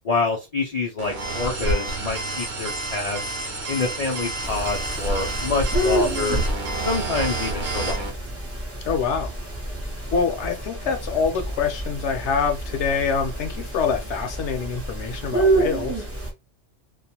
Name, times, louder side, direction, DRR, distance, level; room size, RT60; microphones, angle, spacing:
voice 1, 0.0-3.3 3.7-6.4 6.8-8.0, left 3 dB, 85° left, 0.3 m, -26 dB
sound 1, 1.0-8.1, right 2 dB, 50° right, 0.8 m, -29 dB
Alarm, 1.2-8.0, right 1 dB, 80° right, 0.9 m, -34 dB
sound 2, 4.4-16.3, right 2 dB, 20° right, 0.4 m, -29 dB
voice 2, 8.9-9.3 10.1-16.1, left 6 dB, 70° left, 0.8 m, -25 dB
2.4 x 2.1 x 2.7 m
omnidirectional pair, 1.3 m